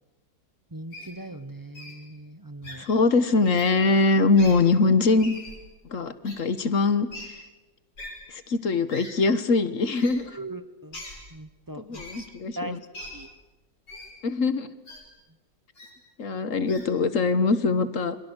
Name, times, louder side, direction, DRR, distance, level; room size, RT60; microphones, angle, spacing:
voice 1, 0.7-2.8 10.3-11.0 11.3-12.3 12.6-12.8 13.1-13.3, right 2 dB, 20° right, 13 dB, 0.6 m, -39 dB
Wild animals, 0.9-1.1 1.7-1.9 2.6-2.8 3.4-3.7 4.3-4.5 5.2-5.5 6.2-6.3 7.1-7.2 8.0-8.1 8.9-9.1 9.9-10.1 10.9-11.2 11.9-12.2 12.9-13.1 13.9-14.1 14.8-15.0 15.7-15.9 16.7-16.8, left 1 dB, 75° left, 6.7 m, -41 dB
voice 2, 2.8-5.3 5.9-7.1 8.3-10.3 11.9-12.8 14.2-14.7 16.2-18.2, left 3 dB, 50° left, 13 dB, 1.4 m, -22 dB
27.5 x 22.5 x 8.1 m, 1.1 s
omnidirectional pair, 2.0 m